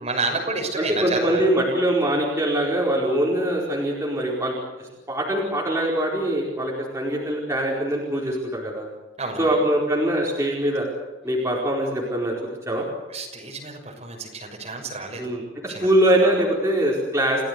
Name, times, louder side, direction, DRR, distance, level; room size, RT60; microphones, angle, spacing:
voice 1, 0.0-1.5 9.2-9.5 13.1-15.3 15.7-15.9 17.4-17.5, right 3 dB, 35° right, 1 dB, 6.1 m, -30 dB
voice 2, 0.8-8.9 9.4-10.9 11.2-12.3 12.7-12.8 15.2-17.4, right 1 dB, 15° right, -4 dB, 4.6 m, -23 dB
30.0 x 17.0 x 8.2 m, 1.2 s
head